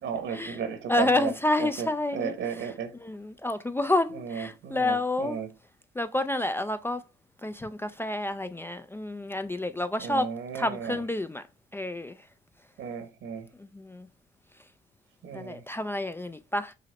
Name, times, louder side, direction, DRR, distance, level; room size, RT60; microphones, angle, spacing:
voice 1, 0.0-1.3 1.6-1.9 2.1-2.9 4.1-5.5 10.0-11.0 12.8-13.5 15.2-15.6, right 7 dB, 75° right, 1.3 m, -34 dB
voice 2, 0.9-5.4 6.0-7.0 7.4-11.4 11.7-12.2 13.6-14.1 15.3-16.7, left 2 dB, 10° left, 0.3 m, -29 dB
5.5 x 2.1 x 4.0 m
cardioid pair, 90°, 20 cm